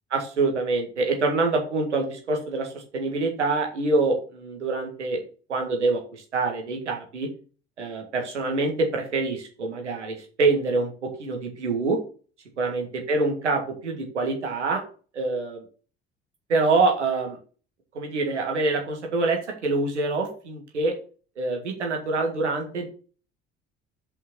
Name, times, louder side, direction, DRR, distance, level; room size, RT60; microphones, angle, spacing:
voice 1, 0.1-7.3 7.8-12.0 12.6-14.8 15.1-15.6 16.5-17.4 17.9-21.0 21.4-22.9, right 3 dB, 80° right, 3 dB, 1.9 m, -25 dB
6.5 x 5.5 x 6.8 m, 0.39 s
figure-of-eight pair, 55°, 34 cm